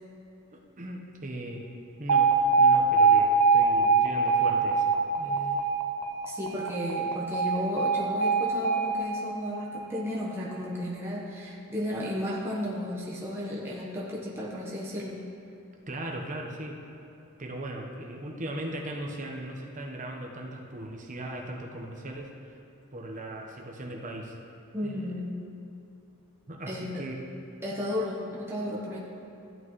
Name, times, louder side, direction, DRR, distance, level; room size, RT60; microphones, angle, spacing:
voice 1, 0.5-1.7 2.0-5.7 15.9-16.8 17.4-22.3 22.9-24.3 24.8-25.2 26.5-27.2, right 1 dB, 35° right, 0 dB, 1.1 m, -38 dB
Alarm, 2.1-10.1, right 4 dB, 90° right, 0.8 m, -23 dB
voice 2, 6.3-15.2 24.7-25.5 26.7-27.0 27.6-29.0, left 1 dB, 10° right, -6 dB, 1.1 m, -34 dB
14.0 x 8.6 x 3.2 m, 2.8 s
head